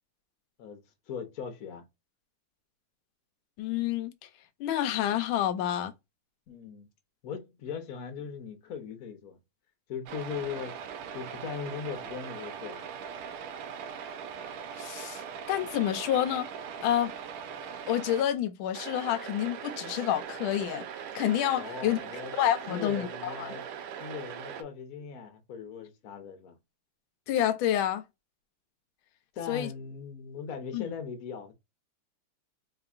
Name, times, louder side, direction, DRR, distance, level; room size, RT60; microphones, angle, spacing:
voice 1, 1.1-1.8 6.5-6.9 7.2-9.4 9.9-10.8 11.1-12.9 21.6-22.3 22.7-23.6 24.0-26.6 29.4-31.5, left 6 dB, 55° left, 1.1 m, -39 dB
voice 2, 3.6-4.1 4.6-5.9 14.8-15.2 15.5-16.5 16.8-17.1 17.9-20.9 21.1-22.0 22.4-23.6 27.3-28.0 29.5-29.7 30.7-30.9, left 11 dB, 75° left, 1.3 m, -28 dB
sound 1, 10.1-18.2 18.7-24.6, right 7 dB, 80° right, 1.5 m, -40 dB
4.4 x 2.9 x 2.4 m
omnidirectional pair, 2.4 m